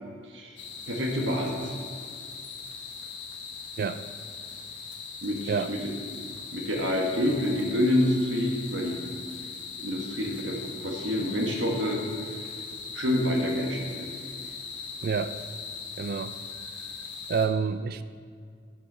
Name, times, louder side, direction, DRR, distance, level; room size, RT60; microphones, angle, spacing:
sound 1, 0.6-17.5, left 5 dB, 75° left, 1.3 m, -40 dB
voice 1, 0.9-1.8 5.2-5.8 6.5-9.0 9.8-12.0 12.9-14.1, left 1 dB, 75° right, 0 dB, 1.5 m, -27 dB
voice 2, 15.0-15.3 16.0-16.3 17.3-18.0, right 5 dB, 50° right, 12 dB, 0.3 m, -28 dB
12.0 x 6.4 x 4.0 m, 2.1 s
head